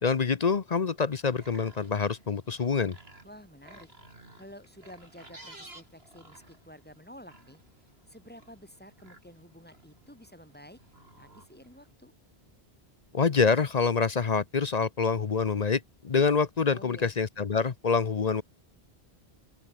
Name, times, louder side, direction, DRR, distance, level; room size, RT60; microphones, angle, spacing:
voice 1, 0.0-3.0 13.1-18.4, left 5 dB, 45° left, 0.8 m, -26 dB
sound 1, 1.1-11.9, right 1 dB, 75° right, 6.1 m, -55 dB
voice 2, 3.2-3.9 4.4-7.6 8.1-10.8 11.1-12.1 16.7-17.1, equal, 10° left, 5.8 m, -50 dB
open air
omnidirectional pair, 1.1 m